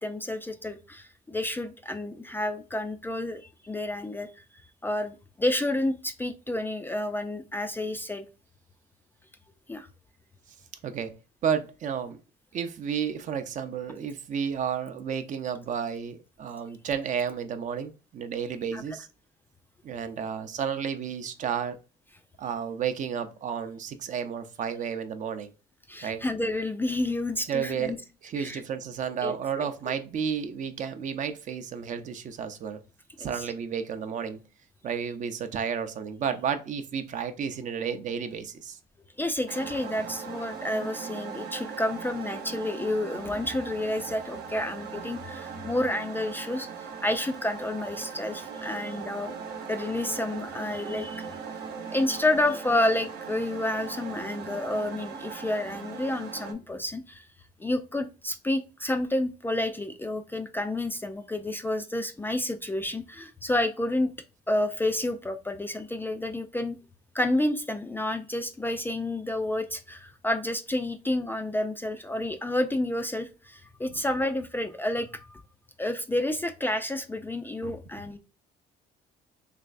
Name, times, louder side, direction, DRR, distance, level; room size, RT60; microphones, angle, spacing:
voice 1, 0.0-4.3 4.8-8.2 9.7-9.9 18.7-18.8 25.9-28.0 28.4-28.6 29.2-29.9 33.2-33.4 39.2-49.3 49.7-51.4 51.9-57.3 57.6-64.1 64.5-66.8 67.1-75.4 75.8-78.2, left 1 dB, 10° left, 8 dB, 0.3 m, -30 dB
voice 2, 11.4-12.2 12.5-19.1 19.8-21.8 22.4-25.5 26.0-26.2 27.5-32.8 33.2-34.4 34.8-38.8, right 7 dB, 50° right, 9 dB, 0.5 m, -32 dB
sound 1, 39.5-56.5, right 6 dB, 75° right, 0.8 m, -39 dB
3.4 x 3.1 x 2.5 m, 0.32 s
cardioid pair, 110°, 17 cm